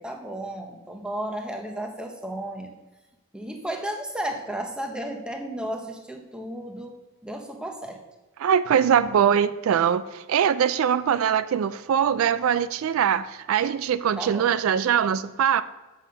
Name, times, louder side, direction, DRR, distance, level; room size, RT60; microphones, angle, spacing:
voice 1, 0.0-2.7 3.3-6.9 7.2-8.0 14.2-14.5, right 1 dB, 5° right, 3 dB, 0.7 m, -33 dB
voice 2, 8.4-15.6, right 8 dB, 70° right, 14 dB, 0.3 m, -22 dB
7.2 x 5.8 x 6.4 m, 1.1 s
head